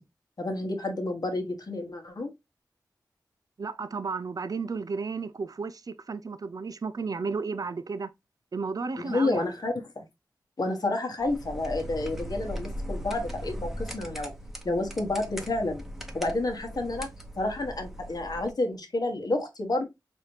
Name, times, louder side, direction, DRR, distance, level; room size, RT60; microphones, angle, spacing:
voice 1, 0.4-2.3 9.0-10.0 10.6-14.3 14.6-15.8 16.1-17.1 17.4-19.8, left 2 dB, 60° left, 1.2 m, -30 dB
voice 2, 3.6-8.1 8.5-9.5, right 4 dB, 55° right, 0.4 m, -33 dB
sound 1, 11.2-18.5, equal, 5° right, 0.9 m, -39 dB
4.0 x 2.7 x 3.1 m
cardioid pair, 50°, 7 cm